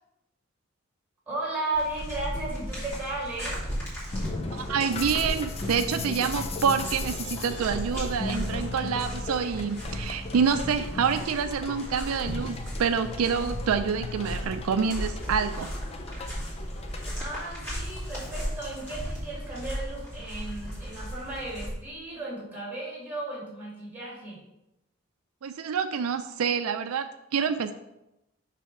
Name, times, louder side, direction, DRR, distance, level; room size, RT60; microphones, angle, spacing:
voice 1, 1.3-3.6 17.1-24.4, right 2 dB, 10° right, -5 dB, 2.4 m, -35 dB
sound 1, 1.7-21.7, equal, 10° left, 2.4 m, -36 dB
sound 2, 4.1-17.1, left 3 dB, 30° left, 0.5 m, -37 dB
voice 2, 4.5-15.7 25.4-27.7, right 6 dB, 80° right, 9 dB, 0.4 m, -27 dB
6.2 x 3.4 x 5.9 m, 0.89 s
head